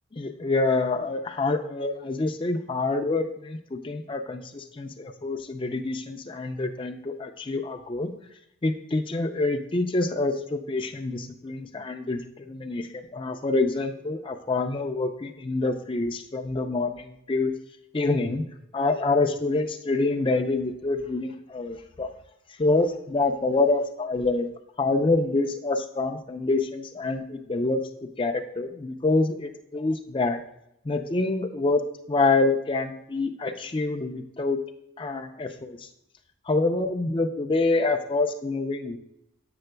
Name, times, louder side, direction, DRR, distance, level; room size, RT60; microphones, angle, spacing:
voice 1, 0.1-8.1 8.6-17.5 17.9-18.4 18.7-22.1 22.6-24.5 24.8-27.8 28.2-30.4 30.8-34.6 35.0-35.9 36.5-39.0, left 3 dB, 25° left, 5 dB, 0.4 m, -26 dB
7.7 x 6.7 x 2.2 m, 0.81 s
head